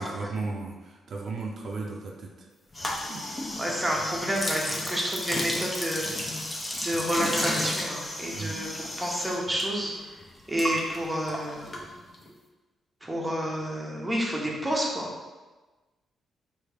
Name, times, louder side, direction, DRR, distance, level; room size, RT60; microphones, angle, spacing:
voice 1, 0.0-2.5 3.1-3.2 8.3-8.6, right 3 dB, 55° right, -1 dB, 0.5 m, -35 dB
sound 1, 2.7-9.6 9.9-12.3, left 1 dB, 20° left, 0.6 m, -33 dB
voice 2, 3.6-6.1 6.8-9.9 10.5-11.7 13.0-15.1, equal, 10° right, -3 dB, 0.8 m, -29 dB
4.8 x 2.7 x 3.3 m, 1.2 s
cardioid pair, 130°, 0 cm